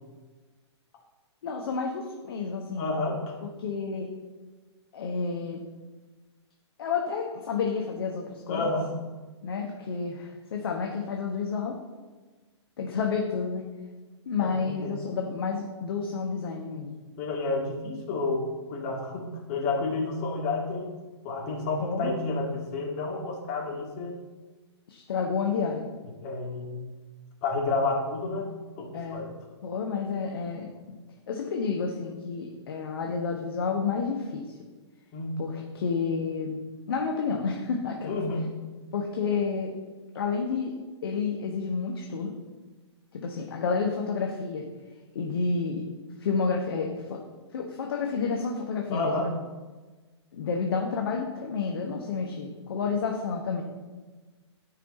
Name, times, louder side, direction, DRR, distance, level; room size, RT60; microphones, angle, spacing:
voice 1, 1.4-2.9 3.4-4.1 4.9-5.6 6.8-8.7 9.4-11.8 12.8-13.6 14.2-17.0 21.8-22.1 24.9-25.9 28.9-29.2 29.6-30.7 31.3-34.6 35.4-36.6 36.9-38.2 38.9-39.7 40.1-40.7 41.0-42.3 43.1-44.7 45.1-45.8 46.2-47.2 47.5-49.3 50.3-53.6, left 5 dB, 55° left, 1 dB, 1.1 m, -30 dB
voice 2, 2.8-3.4 8.5-8.9 14.4-14.9 17.2-21.0 21.2-24.2 26.2-26.8 27.4-29.3 35.1-35.4 38.0-38.5 48.9-49.3, left 3 dB, 35° left, -1 dB, 2.0 m, -30 dB
13.5 x 4.9 x 4.2 m, 1.3 s
figure-of-eight pair, 115°, 15 cm